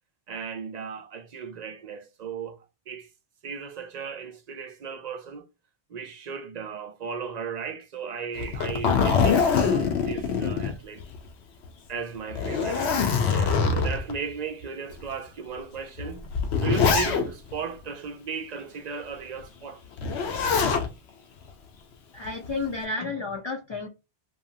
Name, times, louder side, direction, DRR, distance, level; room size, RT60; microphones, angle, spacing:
voice 1, 0.3-3.1 3.4-5.5 5.9-11.0 11.9-16.3 16.6-19.8, right 6 dB, 55° right, 0.5 m, -36 dB
Zipper (clothing), 8.4-11.3 11.6-11.7 12.3-14.1 14.9-15.0 16.0-17.5 20.0-20.9 22.2-22.7, left 5 dB, 85° left, 0.9 m, -24 dB
voice 2, 22.1-23.9, left 3 dB, 50° left, 0.3 m, -31 dB
2.8 x 2.4 x 2.7 m
omnidirectional pair, 1.1 m